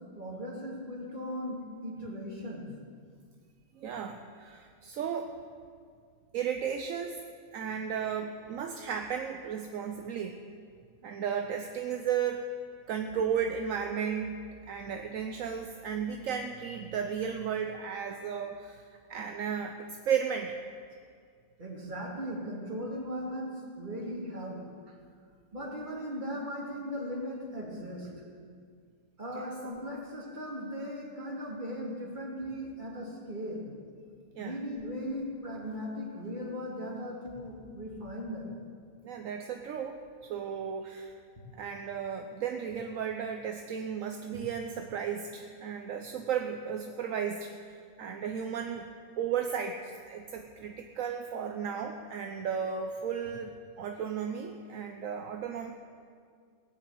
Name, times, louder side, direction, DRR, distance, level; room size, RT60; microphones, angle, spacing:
voice 1, 0.1-2.7 21.6-24.6 25.5-28.1 29.2-33.7 34.4-38.5, equal, 35° right, -2 dB, 2.8 m, -38 dB
voice 2, 3.8-5.3 6.3-7.2 7.5-10.4 11.0-12.5 12.9-20.6 29.4-29.5 34.4-34.6 39.0-40.0 40.3-41.1 41.6-48.9 49.2-55.7, right 7 dB, 70° right, 5 dB, 1.1 m, -34 dB
17.5 x 7.4 x 8.9 m, 2.1 s
omnidirectional pair, 1.5 m